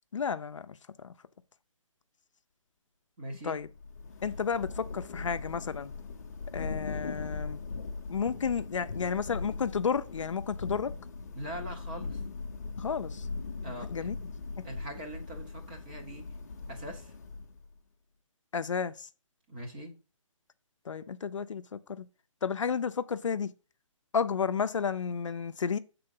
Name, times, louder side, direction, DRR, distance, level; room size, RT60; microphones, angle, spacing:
voice 1, 0.1-1.1 3.4-3.7 4.2-5.9 6.5-7.6 8.1-10.9 12.8-13.3 13.9-14.2 14.6-14.7 18.5-19.1 20.8-22.1 22.4-23.5 24.1-25.8, left 6 dB, 65° left, 0.5 m, -32 dB
voice 2, 3.2-3.6 11.3-12.2 13.6-14.1 14.6-16.3 16.7-17.1 19.5-19.9, right 1 dB, 15° right, 0.9 m, -42 dB
Thunder / Rain, 3.6-17.7, left 4 dB, 30° left, 0.7 m, -40 dB
6.8 x 3.7 x 5.3 m
hypercardioid pair, 175°, 17 cm